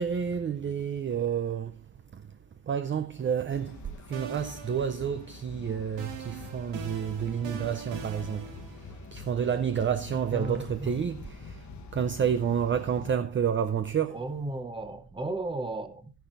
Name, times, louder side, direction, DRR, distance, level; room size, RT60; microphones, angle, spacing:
voice 1, 0.0-1.7 2.7-3.7 4.1-8.4 9.1-11.2 11.9-14.2, right 8 dB, 30° right, 0.4 m, -29 dB
sound 1, 3.5-13.1, left 4 dB, 40° left, 1.1 m, -45 dB
sound 2, 3.5-3.8 4.1-5.5 6.0-9.1, right 6 dB, 90° right, 2.1 m, -43 dB
voice 2, 10.3-11.0 14.1-16.1, right 2 dB, 10° right, 0.8 m, -35 dB
13.0 x 10.5 x 2.5 m
wide cardioid pair, 175°, 44 cm